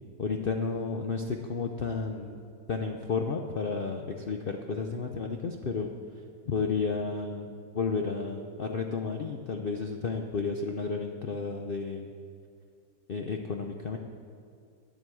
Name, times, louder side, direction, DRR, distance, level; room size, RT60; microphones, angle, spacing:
voice 1, 0.2-2.4 2.7-5.9 6.5-12.1 13.1-14.0, left 4 dB, 75° left, 3 dB, 0.5 m, -32 dB
10.0 x 7.8 x 8.5 m, 2.3 s
omnidirectional pair, 1.8 m